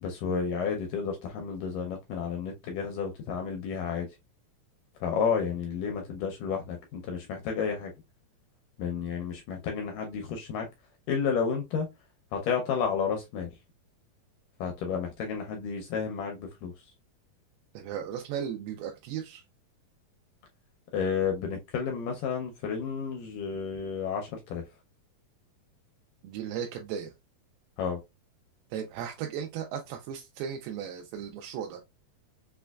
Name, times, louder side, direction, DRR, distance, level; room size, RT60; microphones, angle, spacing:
voice 1, 0.0-4.1 5.0-7.9 8.8-10.7 11.1-11.9 12.3-13.5 14.6-16.7 20.9-24.6 27.8-28.0, left 6 dB, 80° left, 1.9 m, -31 dB
voice 2, 17.7-19.4 26.2-27.1 28.7-31.8, right 8 dB, 85° right, 2.5 m, -36 dB
6.0 x 2.2 x 2.2 m
omnidirectional pair, 4.3 m